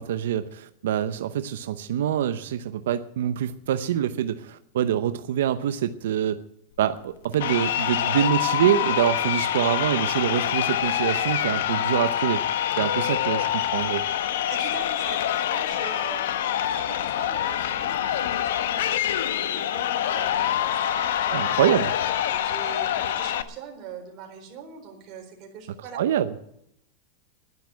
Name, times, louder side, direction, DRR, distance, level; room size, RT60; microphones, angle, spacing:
voice 1, 0.0-6.4 6.8-12.4 12.8-14.0 21.3-21.9 25.9-26.3, right 10 dB, 90° right, 10 dB, 0.7 m, -25 dB
Crowd, 7.3-23.4, left 11 dB, 80° left, 1.0 m, -26 dB
voice 2, 14.5-21.4 22.3-26.0, right 6 dB, 30° right, 1 dB, 4.1 m, -42 dB
11.0 x 10.5 x 9.3 m, 0.76 s
supercardioid pair, 170°, 0 cm